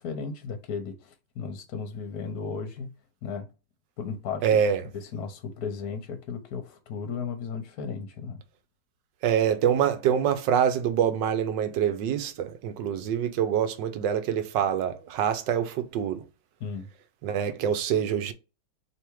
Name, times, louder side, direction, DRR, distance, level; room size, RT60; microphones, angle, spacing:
voice 1, 0.0-2.9 3.2-3.5 4.0-8.4 16.6-16.9, left 5 dB, 60° left, 1.3 m, -35 dB
voice 2, 4.4-4.8 9.2-16.2 17.2-18.3, right 8 dB, 80° right, 1.4 m, -25 dB
3.5 x 3.3 x 4.6 m
omnidirectional pair, 1.9 m